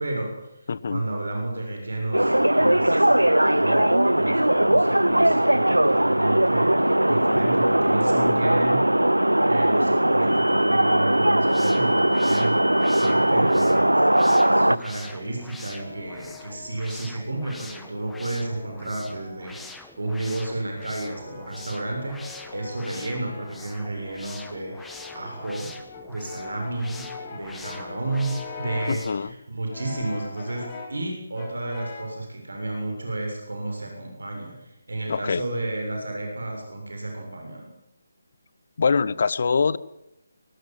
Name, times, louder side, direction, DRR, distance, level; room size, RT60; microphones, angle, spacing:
voice 1, 0.0-8.8 9.4-12.7 13.0-25.7 26.1-27.0 27.3-37.7, right 2 dB, 65° right, 2 dB, 7.3 m, -32 dB
voice 2, 0.7-1.0 28.9-29.3 35.1-35.4 38.8-39.8, left 5 dB, 50° left, 20 dB, 1.0 m, -23 dB
sound 1, 2.1-14.8, right 1 dB, 85° right, 0.7 m, -19 dB
sound 2, 11.3-29.3, left 3 dB, 5° left, 1.7 m, -45 dB
Brass instrument, 15.0-17.0 17.7-19.8 20.4-29.1 29.7-31.0 31.4-32.2, left 4 dB, 25° left, 5.4 m, -42 dB
23.0 x 19.0 x 7.7 m, 0.88 s
figure-of-eight pair, 150°, 0 cm